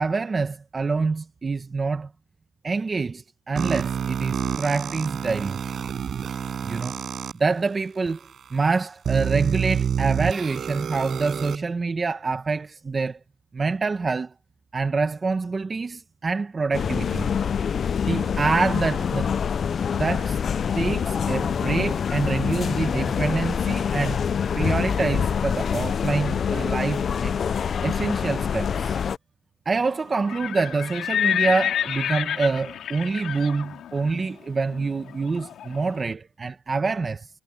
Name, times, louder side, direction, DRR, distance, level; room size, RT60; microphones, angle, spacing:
voice 1, 0.0-2.1 2.6-5.6 6.6-6.9 7.3-8.2 8.5-13.2 13.5-14.3 14.7-17.3 18.0-19.3 19.9-20.4 20.7-24.2 24.5-27.3 27.8-29.0 29.6-37.3, right 4 dB, 25° right, 1.1 m, -26 dB
sound 1, 3.6-7.3 8.1-8.2 9.0-11.6, right 8 dB, 40° right, 7.7 m, -28 dB
sound 2, 16.7-29.2, left 7 dB, 40° left, 0.5 m, -25 dB
Livestock farm animals working animals, 30.1-36.0, left 10 dB, 55° left, 3.2 m, -29 dB
cardioid pair, 135°, 0 cm